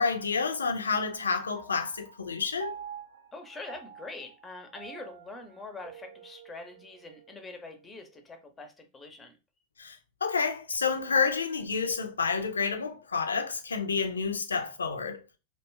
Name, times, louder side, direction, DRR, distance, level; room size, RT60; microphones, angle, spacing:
voice 1, 0.0-2.7 9.8-15.2, left 5 dB, 75° left, 0.4 m, -29 dB
Piano, 1.6-8.2, right 8 dB, 65° right, 0.4 m, -48 dB
voice 2, 3.3-9.4, left 3 dB, 15° left, 0.6 m, -44 dB
2.7 x 2.2 x 3.1 m
figure-of-eight pair, 90°, 0 cm